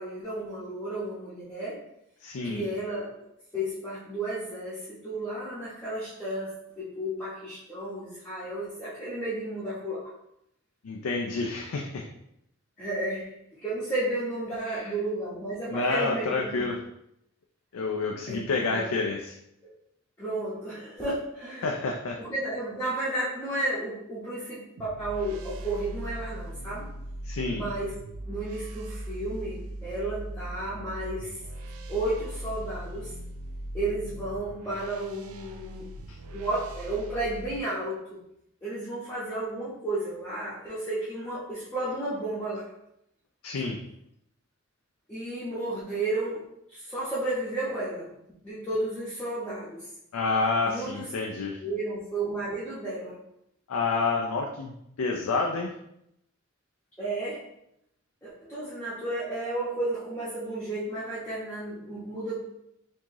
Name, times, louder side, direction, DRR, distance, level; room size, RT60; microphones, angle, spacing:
voice 1, 0.0-1.8 2.4-3.1 3.5-10.0 12.8-13.2 13.5-16.6 18.3-18.9 19.6-19.7 20.2-21.7 22.2-26.8 27.5-28.0 28.3-31.4 31.9-33.1 33.7-35.9 36.3-38.0 38.6-42.7 45.1-46.4 46.7-48.1 48.4-49.9 50.7-51.3 51.6-53.2 57.0-57.4 58.2-62.4, right 1 dB, 10° left, -12 dB, 1.0 m, -33 dB
voice 2, 2.2-2.6 10.8-12.1 14.6-14.9 15.7-16.8 17.7-19.4 21.6-22.2 27.2-27.6 43.4-43.8 50.1-51.6 53.7-55.7, left 3 dB, 80° left, 1 dB, 0.4 m, -29 dB
sound 1, 24.8-37.6, right 1 dB, 80° right, 0.4 m, -39 dB
4.5 x 2.8 x 2.9 m, 0.79 s
head